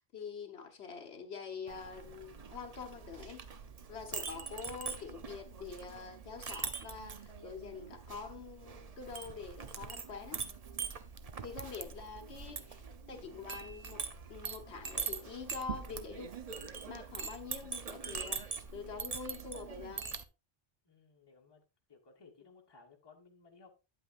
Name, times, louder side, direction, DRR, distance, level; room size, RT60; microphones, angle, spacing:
voice 1, 0.0-3.4 3.9-10.4 11.4-16.3 16.9-20.1, left 5 dB, 70° left, 1.3 m, -46 dB
Chink clink, 1.7-20.2, right 6 dB, 40° right, 0.6 m, -43 dB
voice 2, 20.8-21.6 21.9-23.8, left 4 dB, 20° left, 1.2 m, -60 dB
9.0 x 8.6 x 2.4 m
omnidirectional pair, 1.2 m